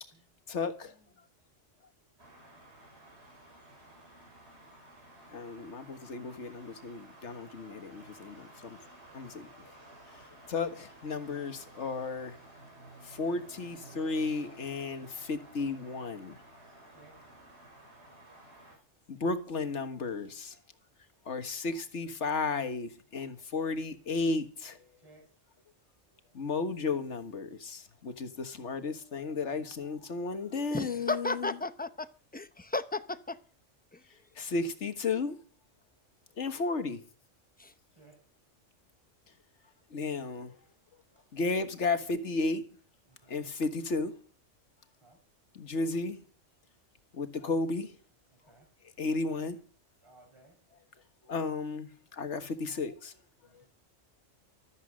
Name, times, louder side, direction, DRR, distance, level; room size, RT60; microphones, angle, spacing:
voice 1, 0.5-0.9 5.3-8.8 9.1-9.5 10.5-12.4 13.0-16.4 19.1-20.6 21.3-24.8 26.3-31.6 34.4-35.4 36.4-37.0 39.9-40.5 41.3-42.7 43.3-44.1 45.5-46.2 47.1-47.9 49.0-49.6 51.3-51.9 52.2-53.1, left 3 dB, 65° left, 1.8 m, -33 dB
sound 1, 2.2-18.8, right 1 dB, 55° right, 6.2 m, -54 dB
voice 2, 16.9-17.2 20.2-20.4 25.0-25.3 37.9-38.2 41.1-41.3 43.1-43.4 45.0-45.2 48.3-48.7 50.0-50.6 53.4-53.7, right 2 dB, 20° right, 5.0 m, -60 dB
voice 3, 30.7-32.1 32.3-33.4 37.6-37.7, left 3 dB, 10° left, 0.6 m, -34 dB
15.0 x 13.5 x 6.3 m
omnidirectional pair, 1.3 m